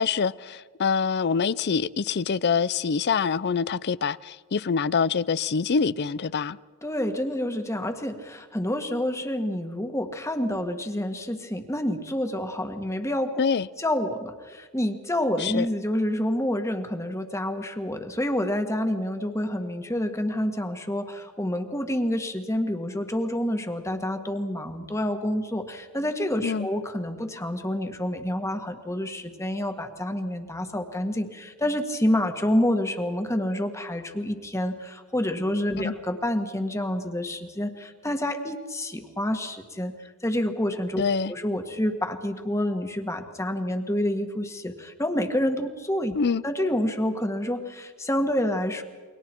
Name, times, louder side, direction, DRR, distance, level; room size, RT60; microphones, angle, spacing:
voice 1, 0.0-6.6 13.4-13.7 15.4-15.7 26.4-26.7 35.8-35.9 41.0-41.3 46.1-46.4, left 5 dB, 50° left, 0.5 m, -25 dB
voice 2, 6.8-13.4 13.8-41.0 41.3-46.1 46.4-48.8, left 1 dB, 15° left, 1.6 m, -28 dB
29.0 x 23.0 x 4.5 m
head